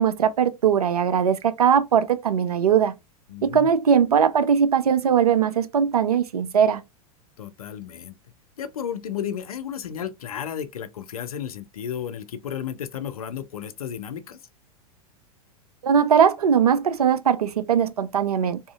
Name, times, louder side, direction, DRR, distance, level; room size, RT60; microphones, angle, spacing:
voice 1, 0.0-2.9 3.4-6.8 15.8-18.6, right 7 dB, 75° right, 0.4 m, -20 dB
voice 2, 3.3-3.7 7.4-8.2 8.6-14.4, left 9 dB, 70° left, 0.4 m, -33 dB
2.7 x 2.4 x 2.3 m
figure-of-eight pair, 90°, 20 cm